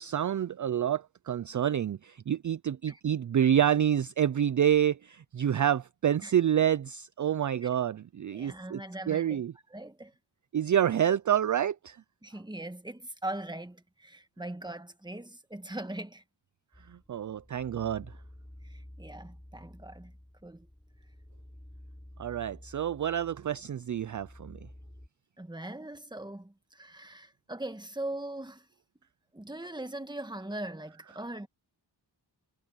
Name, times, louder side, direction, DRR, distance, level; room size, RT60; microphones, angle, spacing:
voice 1, 0.0-8.8 9.1-9.5 10.5-12.0 16.9-18.1 22.2-24.6, right 10 dB, 45° right, 0.5 m, -28 dB
voice 2, 8.3-9.4 9.7-10.1 12.2-16.2 18.6-20.1 20.4-20.7 25.4-28.7 29.3-31.5, right 1 dB, 10° right, 1.6 m, -40 dB
sound 1, 16.7-25.1, left 1 dB, 10° left, 5.1 m, -51 dB
wide cardioid pair, 80°, 43 cm